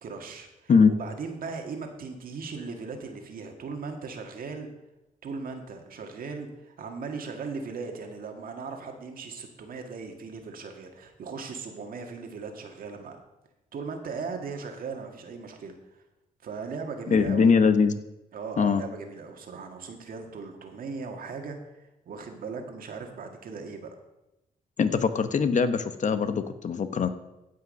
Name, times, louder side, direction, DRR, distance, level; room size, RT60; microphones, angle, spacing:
voice 1, 0.0-0.7 1.0-4.7 5.2-13.2 13.7-15.7 16.4-17.5 18.3-24.0, right 4 dB, 70° right, 4 dB, 1.8 m, -38 dB
voice 2, 17.1-17.9 18.6-18.8 24.8-27.1, left 5 dB, 55° left, 11 dB, 0.9 m, -22 dB
15.5 x 5.7 x 5.3 m, 0.95 s
cardioid pair, 70°, 15 cm